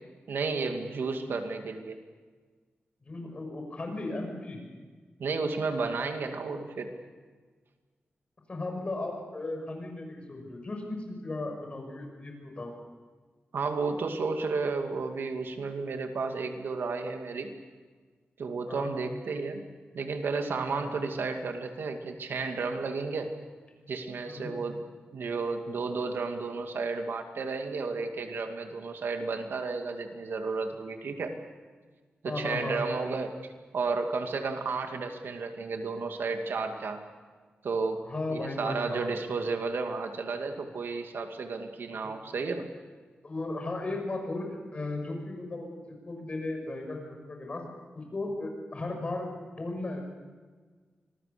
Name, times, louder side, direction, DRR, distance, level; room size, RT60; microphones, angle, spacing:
voice 1, 0.3-2.0 5.2-6.9 13.5-17.5 18.4-19.6 19.9-23.4 23.9-24.8 25.1-31.4 32.2-33.3 33.7-37.0 37.6-38.0 38.3-42.7, right 4 dB, 80° right, 5 dB, 2.4 m, -32 dB
voice 2, 3.0-4.6 8.5-12.7 18.7-18.9 20.8-20.9 24.3-24.5 32.2-33.1 38.1-39.1 43.2-44.4 44.7-47.6 47.9-49.3 49.5-50.0, left 2 dB, 35° left, 3 dB, 6.2 m, -36 dB
26.0 x 20.5 x 6.8 m, 1.5 s
wide cardioid pair, 160°, 4 cm